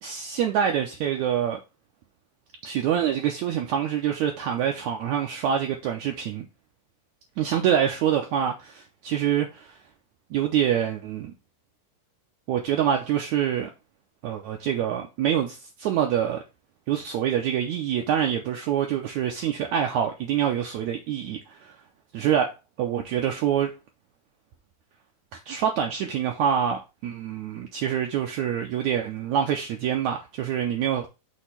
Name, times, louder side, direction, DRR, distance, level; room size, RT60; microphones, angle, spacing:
voice 1, 0.0-1.6 2.6-6.5 7.4-9.8 10.3-11.3 12.5-13.7 14.2-16.4 16.9-21.8 22.1-23.7 25.3-31.1, right 9 dB, 75° right, 1.8 m, -26 dB
6.4 x 2.9 x 5.7 m
omnidirectional pair, 4.0 m